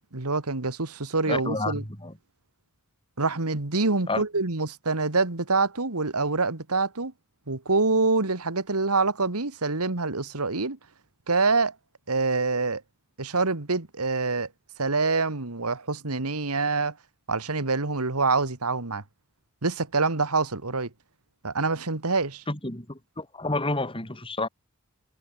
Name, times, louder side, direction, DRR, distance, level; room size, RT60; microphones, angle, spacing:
voice 1, 0.1-1.8 3.2-7.1 7.5-10.8 11.3-11.7 12.1-12.8 13.2-14.5 14.8-16.9 17.3-19.0 19.6-20.9 21.4-22.4, right 3 dB, 85° right, 2.1 m, -26 dB
voice 2, 1.3-2.1 4.1-4.2 22.5-24.5, left 2 dB, 25° left, 4.3 m, -30 dB
head